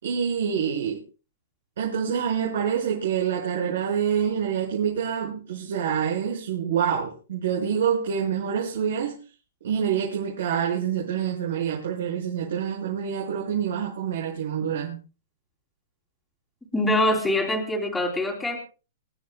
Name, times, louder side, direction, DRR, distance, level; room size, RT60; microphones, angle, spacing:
voice 1, 0.0-1.0 1.8-9.2 9.6-15.0, right 8 dB, 75° right, -3 dB, 5.9 m, -26 dB
voice 2, 16.7-18.6, left 1 dB, 5° left, 0 dB, 3.1 m, -24 dB
28.0 x 11.0 x 2.3 m, 0.34 s
hypercardioid pair, 155°, 0 cm